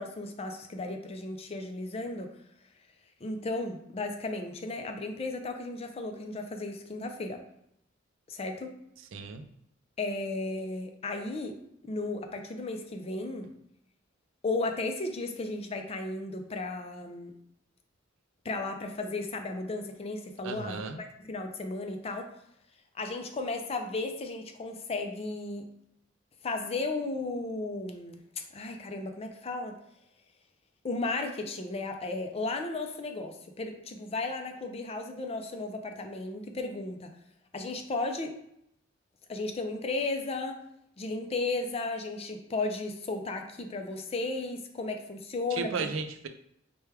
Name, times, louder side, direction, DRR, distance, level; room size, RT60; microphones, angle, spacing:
voice 1, 0.0-2.3 3.2-7.4 8.3-8.7 10.0-11.5 11.8-13.5 14.4-17.3 18.4-22.3 23.0-25.7 26.4-28.2 28.5-29.7 30.8-37.1 37.5-38.3 39.3-40.6 41.0-45.9, left 2 dB, 30° left, 5 dB, 0.4 m, -34 dB
voice 2, 9.1-9.4 20.4-21.0 45.5-46.3, right 4 dB, 85° right, 7 dB, 0.4 m, -34 dB
4.5 x 2.2 x 3.3 m, 0.75 s
head